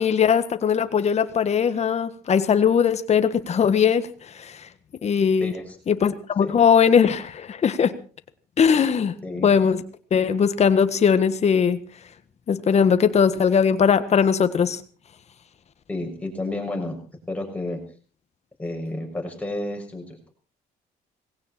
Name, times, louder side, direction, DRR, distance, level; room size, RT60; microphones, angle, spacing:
voice 1, 0.0-4.1 4.3-4.6 5.0-5.5 5.9-7.9 8.6-9.1 9.4-9.8 10.1-11.8 12.5-14.8, left 7 dB, 40° left, 11 dB, 1.6 m, -20 dB
voice 2, 5.4-5.8 6.4-6.5 9.2-9.5 15.9-17.0 17.3-17.8 18.6-20.3, left 2 dB, 10° left, 1 dB, 6.4 m, -31 dB
19.5 x 17.0 x 4.4 m, 0.39 s
cardioid pair, 110°, 17 cm